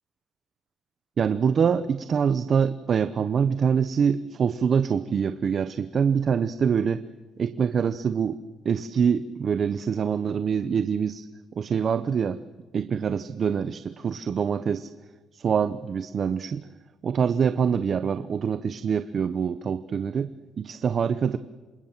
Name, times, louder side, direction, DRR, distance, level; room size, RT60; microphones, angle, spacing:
voice 1, 1.2-7.0 7.4-8.4 8.6-11.3 11.5-12.4 12.7-14.9 15.3-16.7 17.0-20.3 20.6-21.4, right 7 dB, 50° right, 13 dB, 0.9 m, -25 dB
27.5 x 25.5 x 7.5 m, 1.2 s
cardioid pair, 90°, 0 cm